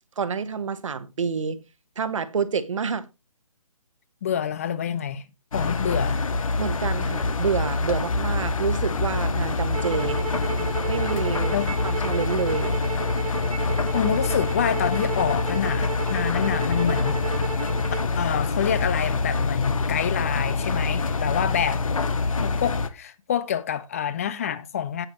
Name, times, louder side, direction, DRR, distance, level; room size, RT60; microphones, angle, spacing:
voice 1, 0.2-1.6 2.0-3.1 6.6-10.2 10.9-11.5 11.8-12.8, right 6 dB, 60° right, 1.3 m, -28 dB
voice 2, 4.2-5.2 5.5-6.2 11.5-11.7 13.9-17.2 18.2-21.8 22.4-25.1, left 9 dB, 25° left, 0.5 m, -27 dB
Engine, 5.5-22.9, left 3 dB, 65° left, 1.3 m, -26 dB
sound 1, 9.7-18.1, right 6 dB, 75° right, 1.3 m, -33 dB
17.0 x 5.7 x 3.1 m
hypercardioid pair, 155°, 18 cm